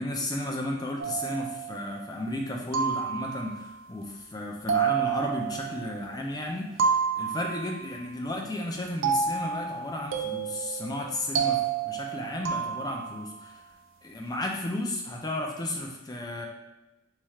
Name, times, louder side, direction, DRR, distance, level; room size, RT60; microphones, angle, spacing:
voice 1, 0.0-13.6 14.0-16.5, left 1 dB, 20° left, 0 dB, 0.4 m, -33 dB
sound 1, 1.0-2.1 2.7-3.7 4.7-6.2 6.8-8.0 9.0-13.3, right 7 dB, 80° right, 0.5 m, -30 dB
3.2 x 2.3 x 4.1 m, 0.98 s
head